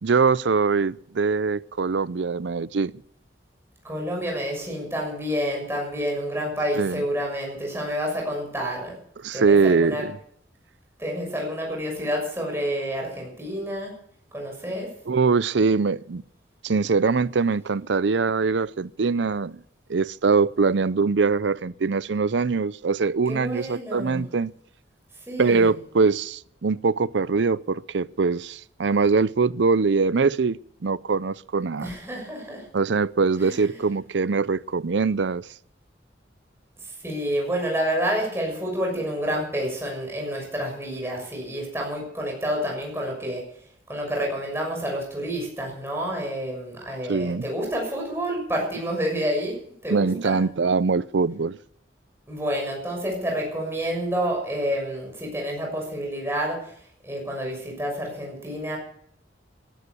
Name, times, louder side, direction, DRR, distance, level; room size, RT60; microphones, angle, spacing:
voice 1, 0.0-2.9 6.7-7.0 9.2-10.2 15.1-16.2 16.6-19.6 19.9-24.5 25.4-31.9 32.7-35.5 47.1-47.5 49.9-51.6, right 4 dB, 70° right, 0.5 m, -22 dB
voice 2, 3.8-9.0 9.3-10.0 11.0-13.9 14.3-14.9 23.3-24.2 25.3-25.7 31.8-32.7 33.4-33.7 37.0-43.4 43.9-49.6 49.8-50.5 52.3-56.6 57.0-58.8, equal, 15° right, 6.5 m, -29 dB
17.0 x 11.5 x 6.9 m
head